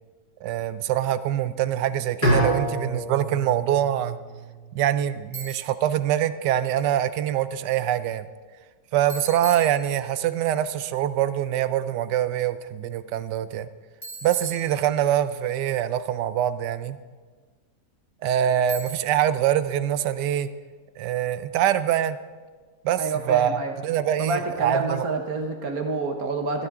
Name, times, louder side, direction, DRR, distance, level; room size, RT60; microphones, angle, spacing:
voice 1, 0.4-4.2 4.7-8.3 8.9-13.7 14.2-17.0 18.2-20.5 21.0-22.2 22.8-25.1, right 11 dB, 85° right, 13 dB, 1.2 m, -24 dB
Bowed string instrument, 2.2-5.2, right 1 dB, 75° left, 5.2 m, -27 dB
Bicycle, 5.3-5.9 9.1-10.3 14.0-15.3 18.7-19.3, right 3 dB, 20° left, 3.9 m, -40 dB
voice 2, 23.0-23.7 24.2-26.7, right 4 dB, 60° right, 4 dB, 1.6 m, -27 dB
15.5 x 14.5 x 3.7 m, 1.4 s
omnidirectional pair, 1.8 m